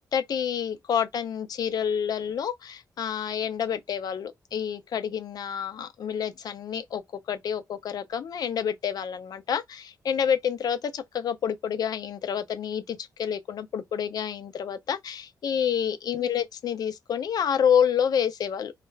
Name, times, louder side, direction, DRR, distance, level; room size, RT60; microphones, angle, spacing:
voice 1, 0.0-7.0 7.3-18.7, left 8 dB, 65° left, 0.4 m, -28 dB
2.4 x 2.1 x 3.2 m
cardioid pair, 120°, 7 cm